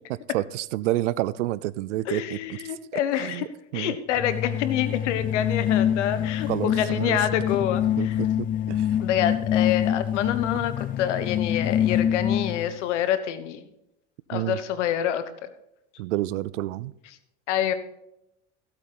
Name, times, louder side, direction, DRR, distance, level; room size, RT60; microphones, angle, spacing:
voice 1, 0.3-2.6 3.2-3.5 3.7-4.0 6.5-7.2 8.0-8.9 14.3-14.6 16.0-16.9, right 16 dB, 85° right, 20 dB, 0.6 m, -29 dB
voice 2, 2.1-3.4 3.7-8.2 9.0-13.7 14.3-15.5 17.5-17.7, left 10 dB, 85° left, 12 dB, 1.3 m, -27 dB
sound 1, 4.2-12.8, left 10 dB, 25° left, 0.4 m, -26 dB
15.5 x 8.3 x 3.9 m, 0.81 s
hypercardioid pair, 85°, 35 cm